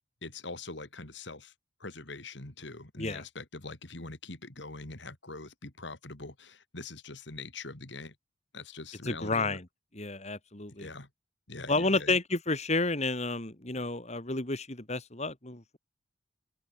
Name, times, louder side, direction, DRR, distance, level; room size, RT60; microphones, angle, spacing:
voice 1, 0.2-1.5 1.8-8.1 8.5-9.6 10.8-11.1 11.5-12.2, left 3 dB, 70° left, 3.2 m, -43 dB
voice 2, 9.0-9.7 9.9-10.9 11.7-15.8, left 3 dB, 35° left, 2.7 m, -31 dB
head